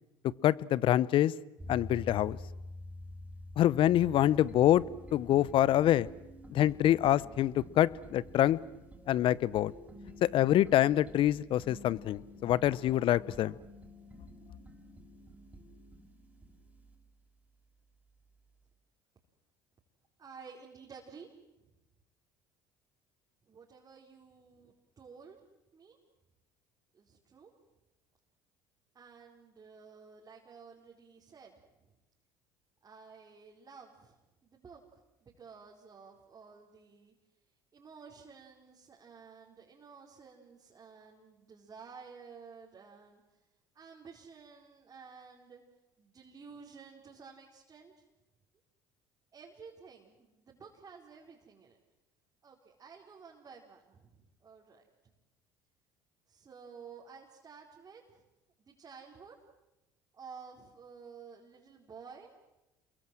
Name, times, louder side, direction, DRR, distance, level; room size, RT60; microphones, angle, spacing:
voice 1, 0.4-1.3 1.7-2.4 3.6-4.8 5.1-6.1 6.5-8.6 9.1-9.7 10.2-13.5, left 12 dB, 55° left, 21 dB, 0.8 m, -26 dB
sound 1, 1.6-17.0, left 1 dB, 15° right, 6.5 m, -49 dB
voice 2, 20.2-21.3 21.6-21.7 23.5-25.4 25.7-26.0 26.9-27.5 28.9-32.0 32.8-37.1 37.7-43.4 43.7-45.6 46.0-48.0 49.3-51.8 52.4-55.1 56.3-58.2 58.6-59.4 60.1-62.3, right 5 dB, 35° right, -2 dB, 4.4 m, -53 dB
28.0 x 22.5 x 7.8 m, 0.99 s
hypercardioid pair, 75°, 10 cm